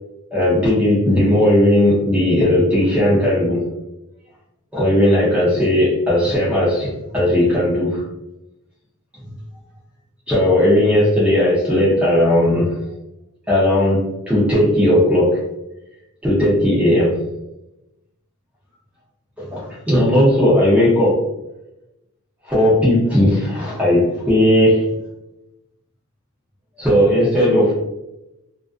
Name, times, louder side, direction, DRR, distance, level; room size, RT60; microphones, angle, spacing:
voice 1, 0.3-3.7 4.7-8.0 10.3-12.7 13.5-15.4 16.2-17.2 19.4-21.2 22.5-24.9 26.8-27.7, left 1 dB, 5° right, -7 dB, 0.6 m, -16 dB
2.4 x 2.3 x 2.4 m, 0.93 s
head